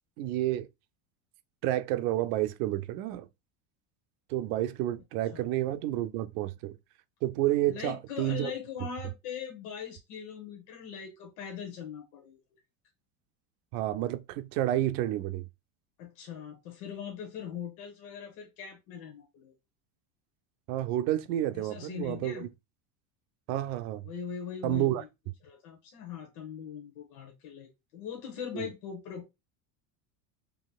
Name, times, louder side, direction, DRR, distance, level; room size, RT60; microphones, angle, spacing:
voice 1, 0.2-0.7 1.6-3.3 4.3-6.8 7.2-8.5 13.7-15.5 20.7-22.5 23.5-24.0 24.6-25.0 28.5-28.7, right 14 dB, 75° right, 0.6 m, -30 dB
voice 2, 5.3-5.6 7.7-12.4 16.0-19.5 21.5-22.5 24.0-25.1 25.4-29.3, left 7 dB, 70° left, 1.0 m, -41 dB
4.0 x 2.9 x 2.3 m
cardioid pair, 145°, 48 cm